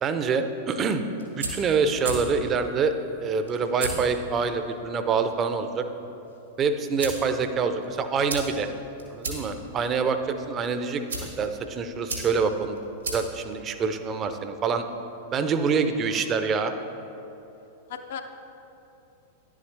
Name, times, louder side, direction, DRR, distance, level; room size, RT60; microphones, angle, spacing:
voice 1, 0.0-1.0 1.4-2.9 3.2-5.8 6.6-8.7 9.1-12.8 13.1-14.8 15.3-16.7, right 5 dB, 30° right, 9 dB, 0.6 m, -26 dB
sound 1, 1.0-14.4, right 2 dB, 85° right, 1.7 m, -38 dB
voice 2, 15.9-16.4 17.9-18.2, left 7 dB, 60° left, 6 dB, 0.6 m, -39 dB
10.5 x 7.2 x 3.3 m, 2.9 s
figure-of-eight pair, 95°, 0 cm